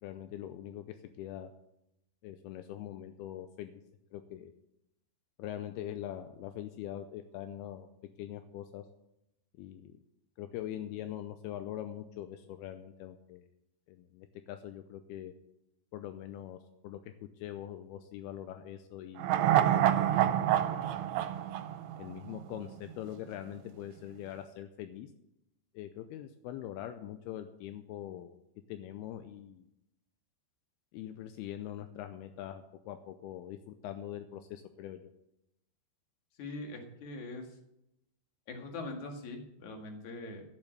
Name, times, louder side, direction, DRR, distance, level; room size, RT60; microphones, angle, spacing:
voice 1, 0.0-1.5 2.2-3.7 4.1-4.5 5.4-7.9 8.2-8.8 9.6-10.0 10.4-13.5 13.9-15.3 15.9-19.3 19.6-21.4 22.0-25.1 25.7-28.4 28.7-29.7 30.9-35.0, left 11 dB, 85° left, 8 dB, 2.6 m, -43 dB
sound 1, 19.2-22.6 22.9-23.0, right 11 dB, 80° right, 2.6 m, -27 dB
voice 2, 36.4-37.5 38.5-40.4, left 2 dB, 55° left, 3 dB, 3.0 m, -42 dB
13.5 x 7.3 x 8.0 m, 0.84 s
omnidirectional pair, 4.7 m